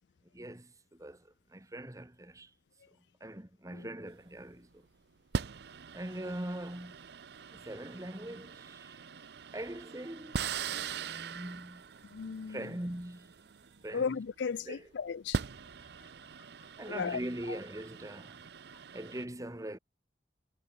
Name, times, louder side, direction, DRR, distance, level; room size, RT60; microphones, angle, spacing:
voice 1, 0.3-2.5 3.2-4.9 5.9-7.0 7.5-9.0 9.5-11.8 12.5-13.3 13.8-14.2 14.7-14.9 16.8-18.4 18.9-19.8, right 1 dB, 20° right, 1.5 m, -42 dB
sound 1, 4.1-4.4 5.3-14.3 15.1-19.2, right 5 dB, 65° right, 0.6 m, -41 dB
voice 2, 12.1-12.7 13.9-15.4 16.9-17.2, left 6 dB, 75° left, 0.4 m, -35 dB
head